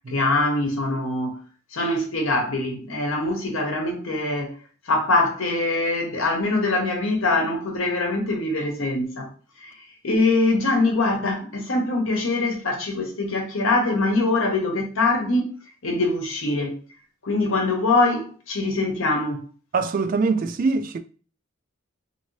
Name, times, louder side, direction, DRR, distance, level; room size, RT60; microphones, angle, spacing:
voice 1, 0.1-1.4 1.7-4.6 4.9-9.3 9.6-15.5 15.8-16.8 17.2-19.4, left 2 dB, 80° left, 0.9 m, -23 dB
voice 2, 19.7-21.0, right 4 dB, 40° right, 0.3 m, -23 dB
2.9 x 2.6 x 3.1 m
head